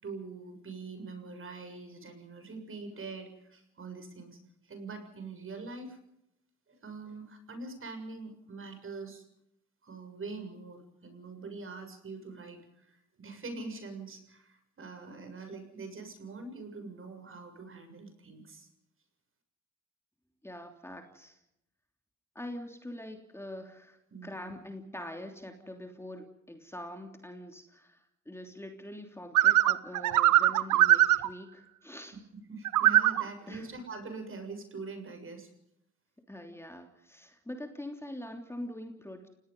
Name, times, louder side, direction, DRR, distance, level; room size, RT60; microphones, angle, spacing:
voice 1, 0.0-4.4 4.6-6.0 6.7-9.2 9.8-18.7 24.1-24.6 32.3-35.5, right 3 dB, 45° right, 6 dB, 7.1 m, -44 dB
voice 2, 20.4-21.4 22.3-28.0 28.2-32.1 33.5-33.7 36.3-39.3, left 1 dB, 10° left, 4 dB, 3.2 m, -44 dB
sound 1, 29.3-31.3 32.6-33.2, right 14 dB, 85° right, 1.0 m, -22 dB
29.5 x 18.5 x 5.4 m, 0.80 s
cardioid pair, 90°, 30 cm